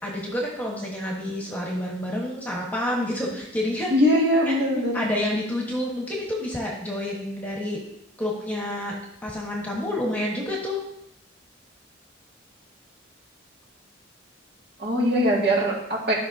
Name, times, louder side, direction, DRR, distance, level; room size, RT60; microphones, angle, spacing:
voice 1, 0.0-3.9 4.4-4.6 4.9-7.8 8.2-9.0 9.2-10.8, left 1 dB, 10° left, -3 dB, 1.5 m, -29 dB
voice 2, 3.9-4.9 14.8-16.1, equal, 50° right, -3 dB, 2.2 m, -21 dB
13.5 x 5.6 x 2.8 m, 0.80 s
head